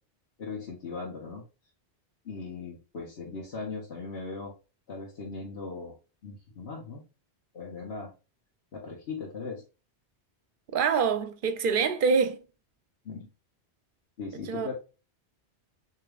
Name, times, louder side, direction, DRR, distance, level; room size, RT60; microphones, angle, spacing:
voice 1, 0.4-1.4 2.2-4.5 4.9-5.9 6.2-7.0 7.5-8.1 8.7-9.6 13.0-13.3 14.2-14.7, left 4 dB, 65° left, 1.3 m, -38 dB
voice 2, 10.7-12.4 14.3-14.7, right 5 dB, 55° right, 0.8 m, -26 dB
6.5 x 3.0 x 2.3 m
omnidirectional pair, 1.1 m